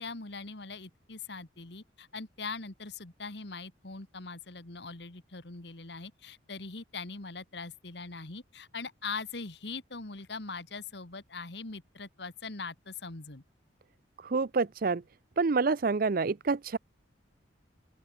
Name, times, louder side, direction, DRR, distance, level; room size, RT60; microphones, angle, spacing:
voice 1, 0.0-13.4, left 4 dB, 60° left, 2.0 m, -41 dB
voice 2, 14.2-15.0 15.4-16.8, right 4 dB, 50° right, 0.5 m, -27 dB
open air
head